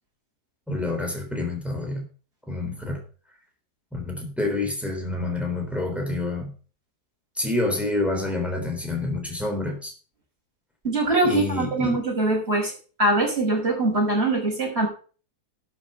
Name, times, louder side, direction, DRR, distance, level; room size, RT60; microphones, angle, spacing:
voice 1, 0.7-2.1 2.5-3.0 3.9-6.5 7.4-9.9 11.2-12.0, left 2 dB, ahead, 2 dB, 3.7 m, -28 dB
voice 2, 10.8-12.7 13.0-14.9, right 2 dB, 40° right, 0 dB, 6.0 m, -22 dB
11.5 x 7.6 x 5.6 m, 0.38 s
omnidirectional pair, 1.7 m